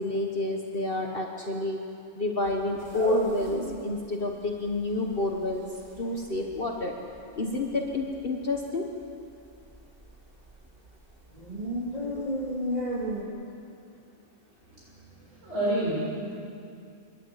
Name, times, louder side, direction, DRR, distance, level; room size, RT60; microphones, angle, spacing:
voice 1, 0.0-1.8 2.1-5.6 6.0-6.9 7.4-8.9, left 2 dB, 45° left, 1 dB, 1.5 m, -29 dB
sound 1, 2.4-4.0 4.3-4.4 4.6-6.9 7.2-7.4 7.7-8.3 8.6-8.7 9.1-9.2 9.6-10.9 11.2-13.2, right 1 dB, 30° right, 2.4 m, -33 dB
voice 2, 14.6-16.4, right 1 dB, 60° right, -7 dB, 7.4 m, -31 dB
26.5 x 13.0 x 8.3 m, 2.5 s
omnidirectional pair, 1.4 m